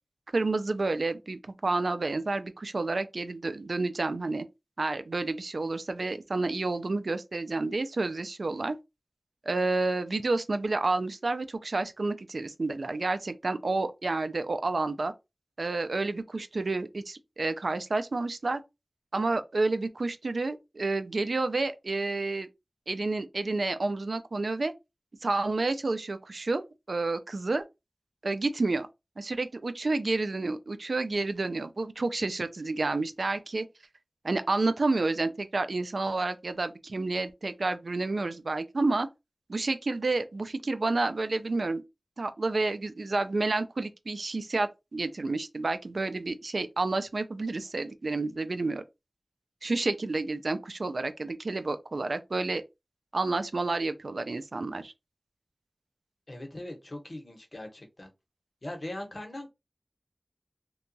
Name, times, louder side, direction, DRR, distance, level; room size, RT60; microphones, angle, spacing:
voice 1, 0.3-4.5 4.8-8.8 9.5-15.1 15.6-18.6 19.1-22.5 22.9-24.7 25.2-27.6 28.2-28.9 29.2-33.7 34.2-39.1 39.5-41.8 42.2-48.8 49.6-52.6 53.1-54.9, right 3 dB, 85° right, 0.3 m, -30 dB
voice 2, 56.3-58.1 58.6-59.5, left 1 dB, 50° left, 0.9 m, -40 dB
2.8 x 2.2 x 2.6 m
wide cardioid pair, 60°, 0 cm